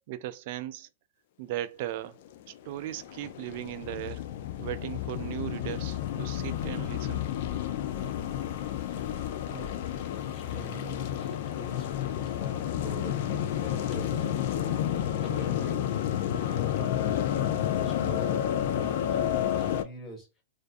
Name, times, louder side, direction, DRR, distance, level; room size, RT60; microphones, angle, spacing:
voice 1, 0.1-0.9 1.4-4.3 4.6-7.2, right 14 dB, 55° right, 0.3 m, -37 dB
sound 1, 2.2-19.8, left 11 dB, 60° left, 0.3 m, -31 dB
voice 2, 10.0-14.8 15.2-15.8 16.2-20.3, equal, 20° left, 1.1 m, -44 dB
2.5 x 2.2 x 2.4 m
hypercardioid pair, 135°, 0 cm